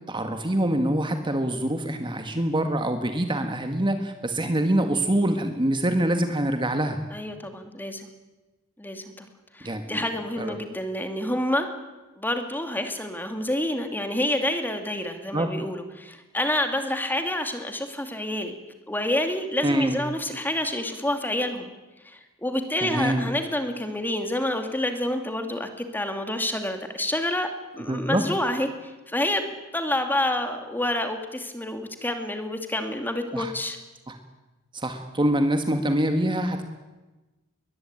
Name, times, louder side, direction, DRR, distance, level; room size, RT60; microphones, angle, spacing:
voice 1, 0.1-7.0 9.6-10.0 10.4-10.6 15.3-15.5 19.6-20.0 22.8-23.3 27.9-28.2 33.3-33.5 34.1-34.2 34.7-36.6, right 1 dB, 25° right, 6 dB, 1.8 m, -25 dB
voice 2, 7.1-8.1 8.8-9.3 9.5-11.7 12.2-18.6 18.9-21.7 22.0-27.5 27.8-33.8, left 1 dB, 10° left, 6 dB, 2.6 m, -28 dB
22.0 x 21.0 x 9.0 m, 1.1 s
head